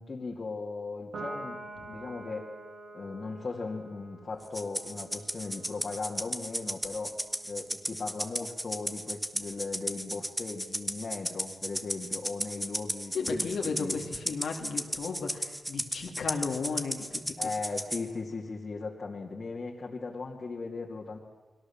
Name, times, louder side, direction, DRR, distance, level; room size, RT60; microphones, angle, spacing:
voice 1, 0.0-1.6 1.9-2.5 2.9-7.1 7.4-14.0 17.4-21.2, left 4 dB, 45° left, -2 dB, 2.4 m, -38 dB
Piano, 1.1-7.8, right 2 dB, 80° right, 8.0 m, -46 dB
Rattle (instrument), 4.5-18.0, equal, 5° right, 1.2 m, -35 dB
voice 2, 13.1-17.5, left 4 dB, 85° left, 1 dB, 2.6 m, -34 dB
29.5 x 21.5 x 7.3 m, 1.2 s
wide cardioid pair, 125°, 0 cm